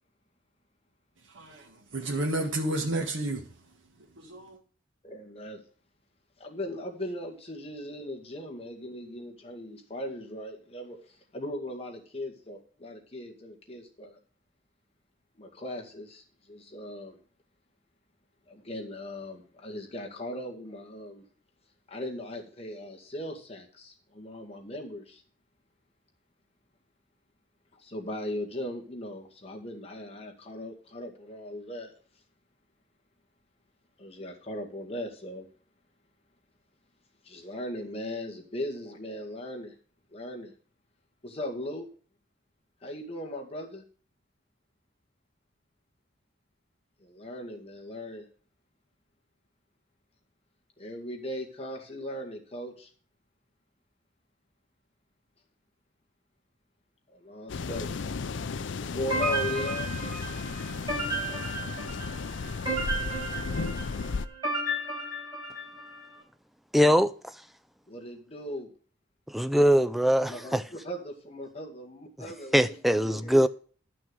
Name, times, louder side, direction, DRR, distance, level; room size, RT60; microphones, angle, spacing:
voice 1, 1.3-3.4 4.2-4.6, right 1 dB, 80° right, 1.6 m, -31 dB
voice 2, 5.0-5.6 6.4-14.2 15.4-17.2 18.5-21.3 21.9-25.2 27.8-31.9 34.0-35.5 37.2-39.7 40.1-40.5 41.2-41.9 42.8-43.8 47.0-48.3 50.8-52.9 57.1-58.0 58.8-59.9 67.9-68.7 70.3-72.8 73.0-73.5, left 1 dB, 30° left, 2.0 m, -38 dB
sound 1, 57.5-64.3, left 4 dB, 70° left, 0.5 m, -34 dB
sound 2, 59.1-66.0, right 2 dB, 20° right, 6.7 m, -33 dB
voice 3, 66.7-67.1 69.3-70.6 72.5-73.5, equal, ahead, 0.4 m, -22 dB
10.5 x 6.2 x 6.3 m
head